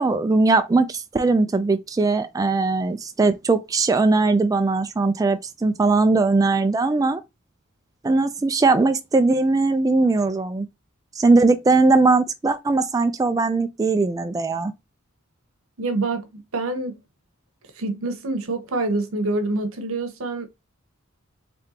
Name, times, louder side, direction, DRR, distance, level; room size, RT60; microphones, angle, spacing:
voice 1, 0.0-7.2 8.0-10.7 11.2-14.7, right 3 dB, 15° right, 0.3 m, -20 dB
voice 2, 15.8-17.0 17.8-20.5, right 2 dB, 85° right, 0.9 m, -26 dB
3.7 x 3.4 x 2.8 m
head